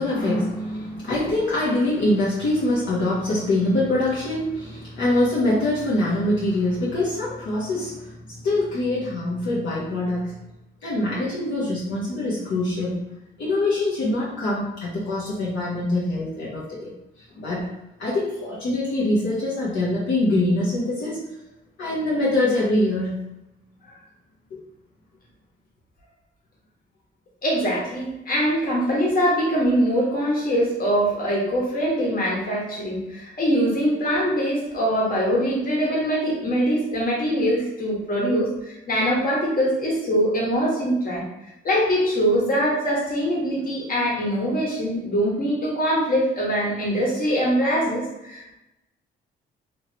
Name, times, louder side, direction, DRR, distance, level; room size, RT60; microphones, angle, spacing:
voice 1, 0.0-10.3 10.8-13.0 13.4-16.9 17.2-17.7 18.0-21.2 21.8-23.2 24.5-24.6, left 1 dB, 70° left, -7 dB, 1.0 m, -24 dB
voice 2, 27.4-41.2 41.6-48.5, equal, 45° left, -4 dB, 1.4 m, -23 dB
3.1 x 2.8 x 2.8 m, 0.92 s
cardioid pair, 90°, 20 cm